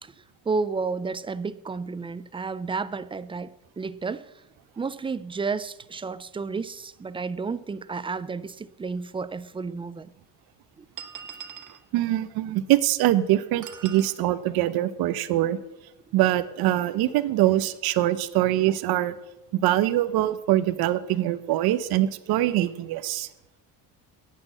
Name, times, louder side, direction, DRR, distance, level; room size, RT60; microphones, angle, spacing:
voice 1, 0.0-4.3 4.8-10.1 10.8-10.9, right 4 dB, 15° right, 0.3 m, -32 dB
sound 1, 9.0-9.1 10.0-10.1 11.0-11.8 13.6-14.2, right 8 dB, 55° right, 1.2 m, -41 dB
voice 2, 11.9-15.6 16.1-19.2 19.5-23.3, right 14 dB, 75° right, 0.9 m, -23 dB
10.5 x 8.8 x 7.5 m
cardioid pair, 125°, 37 cm